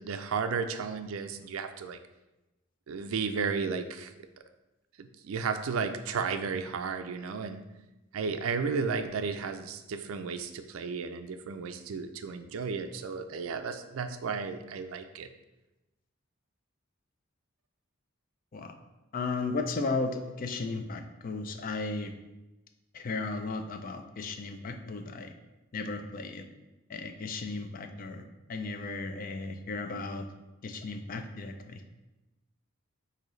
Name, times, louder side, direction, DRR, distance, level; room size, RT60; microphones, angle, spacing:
voice 1, 0.0-2.0 2.9-4.1 5.0-7.6 8.1-15.3, right 5 dB, 80° right, 9 dB, 0.4 m, -33 dB
voice 2, 19.1-22.1 22.9-25.3 25.7-26.5 26.9-28.2 28.5-30.3 30.6-31.8, left 3 dB, 45° left, 6 dB, 0.4 m, -35 dB
6.2 x 2.7 x 3.1 m, 1.0 s
head